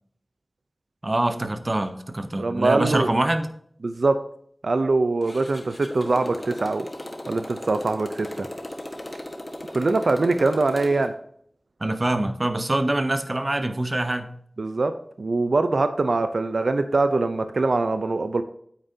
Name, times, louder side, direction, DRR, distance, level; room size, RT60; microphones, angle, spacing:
voice 1, 1.0-3.5 11.8-14.4, right 1 dB, 40° right, 10 dB, 0.8 m, -24 dB
voice 2, 2.4-3.1 3.8-4.2 4.6-6.9 7.3-8.5 9.7-11.1 14.6-14.9 15.2-18.4, right 3 dB, 80° right, 9 dB, 0.5 m, -23 dB
Motorcycle, 5.2-11.1, left 1 dB, 35° left, 1.4 m, -37 dB
8.9 x 8.8 x 2.8 m, 0.63 s
wide cardioid pair, 65°, 0 cm